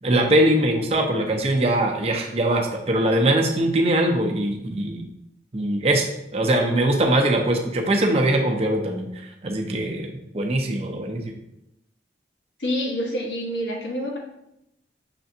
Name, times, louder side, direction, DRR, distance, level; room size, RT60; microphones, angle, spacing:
voice 1, 0.0-5.0 5.5-6.1 6.3-11.3, right 1 dB, 35° right, 2 dB, 0.6 m, -22 dB
voice 2, 12.6-14.2, equal, 80° left, -2 dB, 1.2 m, -27 dB
5.8 x 3.4 x 2.7 m, 0.83 s
head